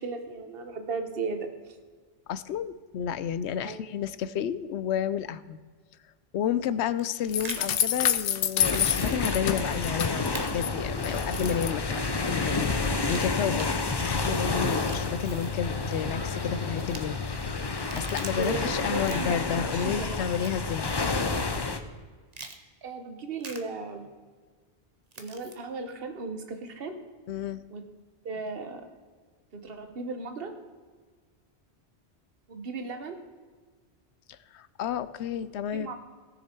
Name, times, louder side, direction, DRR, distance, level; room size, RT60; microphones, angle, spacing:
voice 1, 0.0-1.5 3.6-4.0 18.3-19.4 19.7-20.2 22.8-24.1 25.2-27.0 27.7-27.8 28.2-28.8 29.5-30.5 32.5-33.2 35.7-36.0, right 4 dB, 60° right, 7 dB, 1.3 m, -36 dB
voice 2, 2.3-5.6 6.3-13.7 14.0-17.2 17.7-20.9 27.3-27.6 34.3-36.0, left 8 dB, 90° left, 16 dB, 0.9 m, -31 dB
sound 1, 6.8-7.6 8.7-8.9 9.1-9.2 10.3-10.5 11.2-11.7 12.9-13.7 14.6-15.6 16.7-17.0 17.7-18.5 19.0-19.4 20.4-20.8 21.3-21.4 22.3-22.6 23.4-23.6 25.1-25.5, right 3 dB, 40° right, 1.0 m, -43 dB
sound 2, 7.3-10.7 11.0-11.7, left 9 dB, 65° left, 0.8 m, -28 dB
sound 3, 8.6-21.8, left 3 dB, 25° left, 0.7 m, -30 dB
18.0 x 6.6 x 4.4 m, 1.5 s
omnidirectional pair, 1.1 m